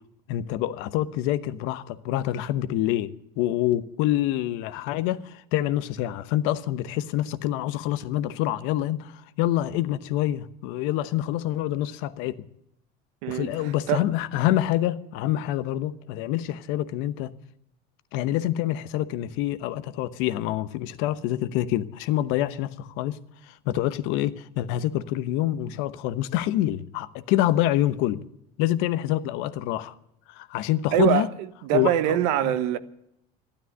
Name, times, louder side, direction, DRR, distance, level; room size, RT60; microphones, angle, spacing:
voice 1, 0.3-12.4 13.3-17.3 18.1-23.2 23.5-28.2 28.6-29.9 30.3-31.3 31.7-32.6, left 13 dB, 70° left, 1.0 m, -26 dB
voice 2, 13.2-14.1 30.9-31.3 31.6-32.8, right 13 dB, 75° right, 1.1 m, -24 dB
13.0 x 12.0 x 8.1 m
supercardioid pair, 125°, 21 cm